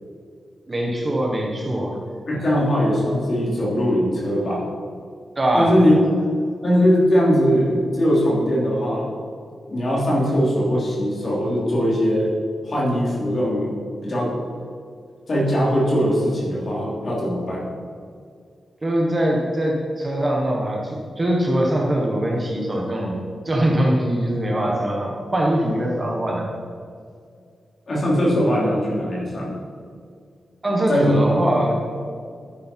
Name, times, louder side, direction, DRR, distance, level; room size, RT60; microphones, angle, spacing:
voice 1, 0.7-2.0 5.4-5.8 18.8-26.5 30.6-31.8, right 1 dB, 20° right, -1 dB, 1.3 m, -22 dB
voice 2, 2.3-4.6 5.5-5.9 6.6-9.1 9.7-12.4 12.6-13.7 14.0-14.3 15.3-17.7 27.9-29.6 30.9-31.2, equal, 40° left, -5 dB, 3.3 m, -20 dB
11.5 x 10.0 x 4.5 m, 2.2 s
wide cardioid pair, 175°, 0 cm